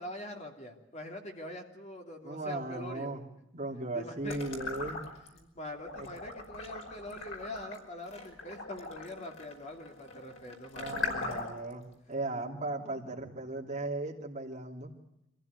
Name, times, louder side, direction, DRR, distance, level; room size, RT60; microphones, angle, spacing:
voice 1, 0.0-3.1 3.9-4.4 5.3-11.5 13.2-13.3, left 1 dB, 35° left, 2 dB, 3.0 m, -44 dB
voice 2, 2.2-3.2 3.5-5.0 5.9-6.1 10.7-11.8 12.1-14.9, right 2 dB, 35° right, 1 dB, 2.8 m, -37 dB
sound 1, 4.2-5.4 5.8-11.7, left 3 dB, 85° left, 5.3 m, -40 dB
25.5 x 15.5 x 9.5 m, 0.88 s
head